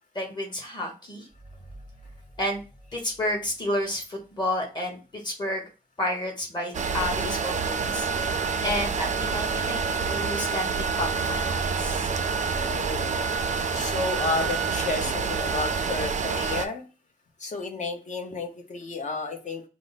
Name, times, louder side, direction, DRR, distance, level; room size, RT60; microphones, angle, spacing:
voice 1, 0.1-1.3 2.4-2.6 2.9-5.6 6.0-12.1, left 1 dB, 30° left, 1 dB, 1.2 m, -31 dB
sound 1, 1.3-4.7, right 1 dB, 10° right, 0.7 m, -51 dB
sound 2, 6.7-16.7, right 5 dB, 50° right, 0.4 m, -27 dB
sound 3, 11.0-16.4, left 3 dB, 85° left, 0.7 m, -44 dB
voice 2, 12.7-13.2 13.7-16.8 17.4-19.6, left 3 dB, 50° left, 3 dB, 0.9 m, -31 dB
4.7 x 2.0 x 4.0 m, 0.33 s
wide cardioid pair, 155°, 16 cm